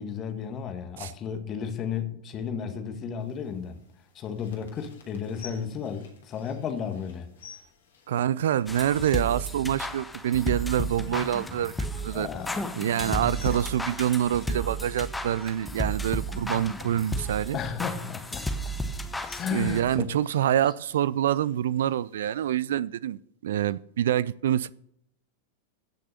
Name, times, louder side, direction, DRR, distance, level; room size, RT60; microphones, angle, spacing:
voice 1, 0.0-3.8 4.1-7.3 12.1-13.4 17.5-18.6 19.4-20.0 20.4-20.5, left 7 dB, 30° left, 1.8 m, -33 dB
sound 1, 3.2-22.6, left 6 dB, 65° left, 3.2 m, -55 dB
voice 2, 8.1-12.3 12.8-17.6 19.5-24.7, right 11 dB, 60° right, 0.4 m, -26 dB
sound 2, 8.7-20.0, equal, 10° left, 1.2 m, -33 dB
15.5 x 6.7 x 6.6 m
figure-of-eight pair, 90°, 0 cm